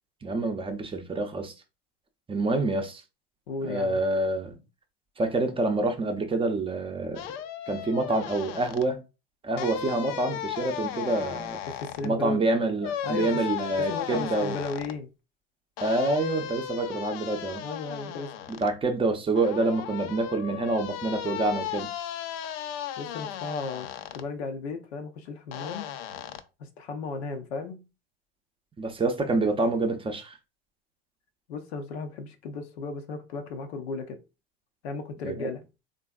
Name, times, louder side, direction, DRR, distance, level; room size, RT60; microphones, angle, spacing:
voice 1, 0.2-1.5 2.3-3.0 3.6-4.6 5.2-7.3 7.7-9.0 9.4-11.6 12.0-14.6 15.8-17.6 18.5-21.9 28.8-30.4 35.2-35.5, right 2 dB, 15° right, 0.6 m, -27 dB
voice 2, 3.5-4.0 11.2-11.3 11.7-12.4 13.0-13.4 13.8-15.1 17.6-18.3 23.0-23.9 24.1-25.9 26.6-27.8 31.5-34.2 34.8-35.6, left 4 dB, 90° left, 0.7 m, -35 dB
sound 1, 7.1-8.8 9.6-12.1 12.8-15.0 15.8-18.7 19.3-24.2 25.5-26.4, left 9 dB, 55° left, 0.5 m, -36 dB
3.3 x 2.5 x 2.3 m
hypercardioid pair, 100°, 31 cm